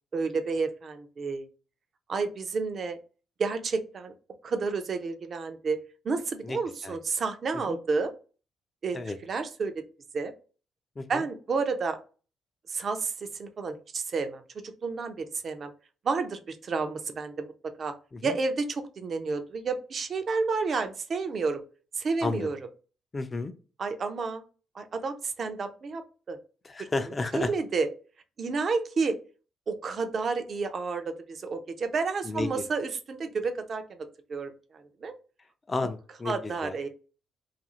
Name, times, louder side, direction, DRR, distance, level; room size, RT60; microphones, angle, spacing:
voice 1, 0.1-1.5 2.1-3.0 3.4-4.1 4.4-5.8 6.0-8.1 8.8-9.8 10.1-10.3 11.1-12.0 12.7-14.4 14.8-15.7 16.0-17.5 17.8-17.9 18.2-21.6 22.0-22.6 23.8-24.4 24.7-26.4 26.8-26.9 27.3-27.9 28.4-29.2 29.7-35.1 35.8-35.9 36.2-36.9, right 4 dB, 50° right, 8 dB, 0.5 m, -30 dB
voice 2, 23.1-23.5 26.7-27.5 32.3-32.6 35.7-36.8, left 3 dB, 25° left, 8 dB, 0.4 m, -32 dB
2.5 x 2.3 x 2.9 m, 0.36 s
cardioid pair, 90°, 0 cm